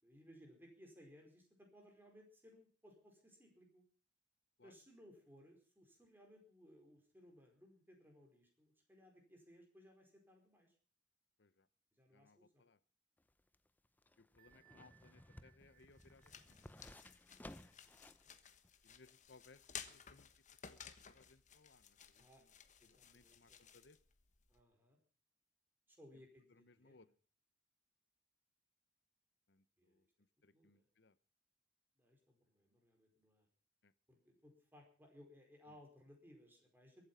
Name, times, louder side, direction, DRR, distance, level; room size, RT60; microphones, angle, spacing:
voice 1, 0.0-3.8 4.6-10.7 11.9-12.7 14.2-14.6 17.1-17.4 18.1-18.4 19.9-20.2 22.2-22.4 22.8-23.6 24.5-25.0 25.9-27.0 29.8-30.0 30.5-30.9 32.0-33.5 34.1-37.1, equal, 10° right, 2 dB, 4.9 m, -63 dB
voice 2, 12.1-12.8 14.2-16.8 18.8-19.6 19.9-20.3 20.7-22.5 22.8-24.0 26.1-26.2 26.5-27.1 29.5-30.1 30.4-31.2 33.8-33.9, left 3 dB, 65° left, 15 dB, 0.9 m, -67 dB
sound 1, 13.2-18.3 18.6-18.7, left 1 dB, 10° left, 0.6 m, -58 dB
Bell, 14.4-19.8, right 16 dB, 45° right, 2.4 m, -74 dB
sound 2, 15.6-24.6, left 8 dB, 40° left, 1.3 m, -57 dB
23.0 x 8.7 x 5.6 m, 0.40 s
head